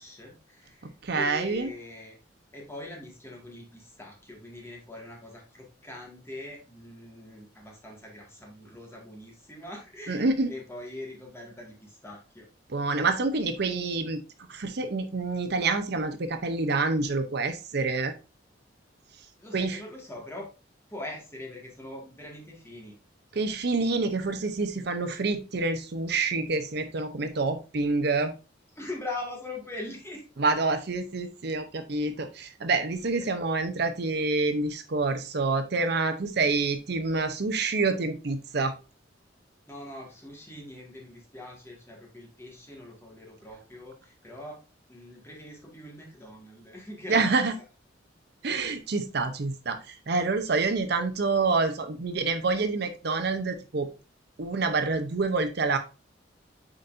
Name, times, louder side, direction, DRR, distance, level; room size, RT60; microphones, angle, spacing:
voice 1, 0.0-2.2 2.5-12.5 19.4-20.5 20.9-23.0 28.8-30.2 33.2-33.3 39.6-44.6 44.9-47.4, left 1 dB, 15° left, -2 dB, 1.9 m, -42 dB
voice 2, 1.0-1.7 10.1-10.5 12.7-14.2 14.5-18.1 19.5-19.8 23.3-28.3 30.4-38.7 47.1-47.5 48.4-53.9 54.4-55.8, right 3 dB, 60° right, 8 dB, 0.7 m, -27 dB
8.8 x 4.2 x 2.6 m, 0.31 s
head